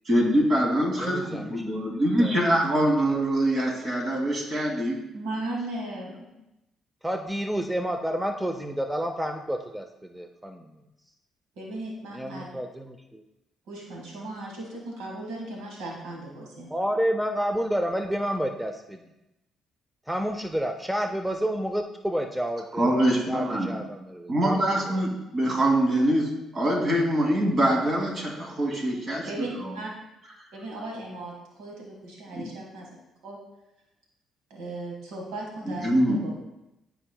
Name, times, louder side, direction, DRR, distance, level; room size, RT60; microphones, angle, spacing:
voice 1, 0.1-5.0 22.8-23.8 24.3-29.7 32.4-32.5 35.6-36.2, right 1 dB, 45° right, -2 dB, 2.4 m, -24 dB
voice 2, 1.0-2.3 7.0-10.7 12.1-13.2 16.7-19.0 20.1-22.9 23.3-24.7, equal, 5° right, 5 dB, 0.5 m, -30 dB
voice 3, 5.1-6.3 11.6-12.5 13.7-16.7 23.0-23.1 29.3-29.9 30.5-32.9 33.2-33.4 34.5-36.2, right 2 dB, 90° right, -1 dB, 1.6 m, -37 dB
12.5 x 4.7 x 2.2 m, 0.93 s
cardioid pair, 80°, 0 cm